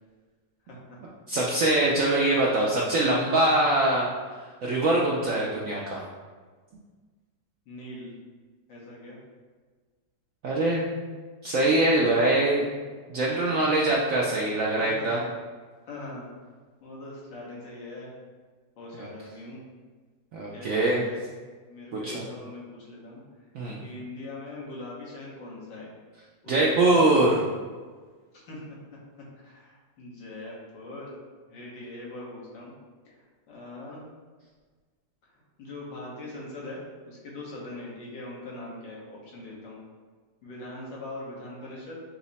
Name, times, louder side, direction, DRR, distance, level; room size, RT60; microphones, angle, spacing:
voice 1, 0.7-1.0 5.3-5.5 7.7-8.1 8.7-9.2 13.2-13.6 14.8-15.2 15.9-16.3 16.8-18.1 18.8-19.6 20.5-21.2 21.7-23.2 23.8-25.9 26.4-27.0 28.3-31.1 31.5-32.7 33.1-33.2 33.5-34.0 35.6-39.8 40.4-42.0, left 1 dB, 80° left, -4 dB, 1.8 m, -41 dB
voice 2, 1.3-4.1 4.6-6.0 10.4-10.9 11.4-12.7 13.1-15.2 19.0-19.1 20.3-21.0 21.9-22.2 23.5-23.9 26.5-27.5, right 2 dB, 75° right, -4 dB, 0.7 m, -23 dB
5.8 x 2.1 x 4.0 m, 1.4 s
omnidirectional pair, 2.0 m